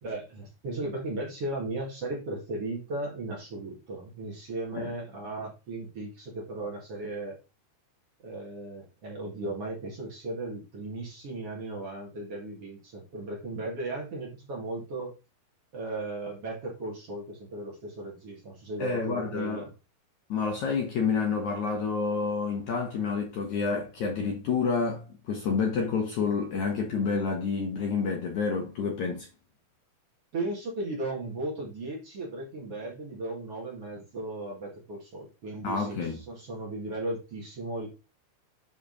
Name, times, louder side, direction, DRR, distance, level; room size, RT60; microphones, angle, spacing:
voice 1, 0.0-7.4 8.2-15.2 15.7-19.7 30.3-37.9, right 2 dB, 45° right, 2.5 m, -36 dB
voice 2, 18.8-19.6 20.3-29.3 35.6-36.2, left 5 dB, 65° left, 2.0 m, -29 dB
10.5 x 4.0 x 4.0 m
omnidirectional pair, 4.7 m